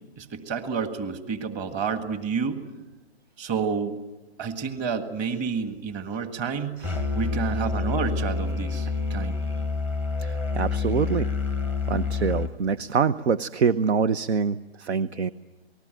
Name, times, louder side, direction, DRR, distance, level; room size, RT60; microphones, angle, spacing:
voice 1, 0.2-2.6 3.4-4.0 4.4-6.8 7.1-9.4, right 6 dB, 20° right, 8 dB, 1.8 m, -29 dB
Musical instrument, 6.8-12.5, left 4 dB, 5° right, 0.8 m, -27 dB
voice 2, 10.2-11.3 11.9-15.3, right 6 dB, 75° right, 15 dB, 0.9 m, -25 dB
28.0 x 20.0 x 9.2 m, 1.1 s
hypercardioid pair, 145°, 33 cm